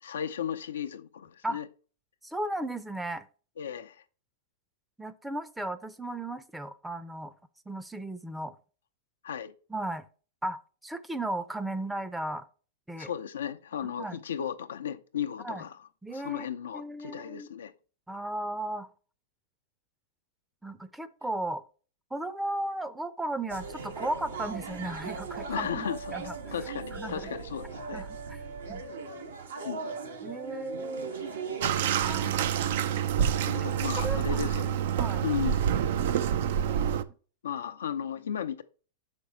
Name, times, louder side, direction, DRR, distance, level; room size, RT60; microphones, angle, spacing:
voice 1, 0.0-1.7 3.6-4.0 9.2-9.5 13.0-15.8 16.1-17.7 25.5-26.2 26.5-28.0 29.6-30.0 33.5-34.8 35.2-35.7 37.4-38.6, left 8 dB, 85° left, 0.6 m, -35 dB
voice 2, 2.2-3.3 5.0-7.3 7.7-8.5 9.7-10.1 10.4-12.5 12.9-13.1 13.8-14.2 15.4-15.6 16.0-17.5 18.1-18.9 20.6-21.6 22.1-26.5 26.9-27.3 27.9-28.4 28.7-28.8 30.2-31.2 32.0-32.7 33.0-33.7 34.0-34.5 35.0-35.2, right 1 dB, 5° right, 0.6 m, -36 dB
sound 1, 23.5-32.3, right 4 dB, 85° right, 1.6 m, -39 dB
Bathtub (filling or washing), 31.6-37.0, right 9 dB, 65° right, 0.5 m, -27 dB
6.1 x 5.2 x 4.5 m
hypercardioid pair, 115°, 0 cm